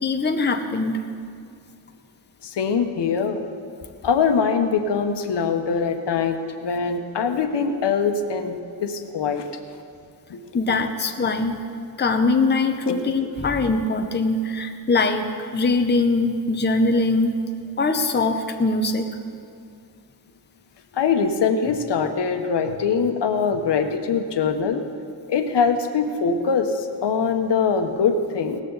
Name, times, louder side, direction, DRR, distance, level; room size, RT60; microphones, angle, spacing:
voice 1, 0.0-1.0 10.5-11.6 12.0-17.4 17.8-19.1, left 3 dB, 25° left, 5 dB, 0.8 m, -22 dB
voice 2, 2.4-3.5 4.0-9.4 10.3-10.4 12.9-13.0 20.9-24.8 25.3-28.6, left 5 dB, 90° left, 6 dB, 1.1 m, -23 dB
18.0 x 14.0 x 4.0 m, 2.4 s
wide cardioid pair, 165°, 40 cm